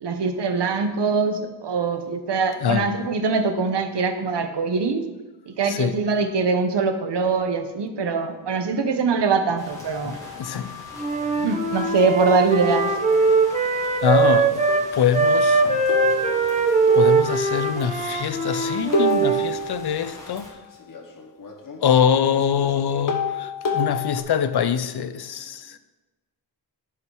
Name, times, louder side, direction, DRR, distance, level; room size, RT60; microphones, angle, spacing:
voice 1, 0.0-5.0 5.5-10.2 11.4-12.9, right 4 dB, 75° right, 0.9 m, -23 dB
voice 2, 2.6-2.9 5.6-6.0 10.0-10.8 14.0-16.2 16.9-20.6 21.8-25.8, left 8 dB, 65° left, 0.6 m, -24 dB
sound 1, 9.2-11.1 14.2-14.3 14.7-14.8 15.9-17.8 18.9-21.8 22.2-24.2, right 1 dB, 50° left, 1.0 m, -29 dB
sound 2, 9.6-20.5, left 1 dB, 10° left, 1.8 m, -44 dB
Wind instrument woodwind instrument, 11.0-14.9 15.1-19.4, right 4 dB, 15° right, 0.8 m, -21 dB
11.0 x 5.0 x 4.7 m
wide cardioid pair, 140°, 42 cm